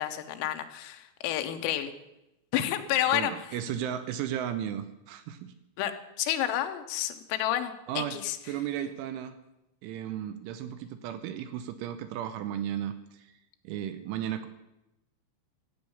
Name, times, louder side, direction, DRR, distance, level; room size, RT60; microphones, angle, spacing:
voice 1, 0.0-1.9 2.5-3.3 5.8-5.9 6.2-8.4, left 12 dB, 85° left, 7 dB, 3.6 m, -30 dB
voice 2, 3.1-5.5 7.9-8.2 8.5-9.3 9.8-13.3 13.6-14.5, right 10 dB, 80° right, 11 dB, 2.9 m, -34 dB
14.5 x 8.5 x 7.0 m, 0.92 s
omnidirectional pair, 5.9 m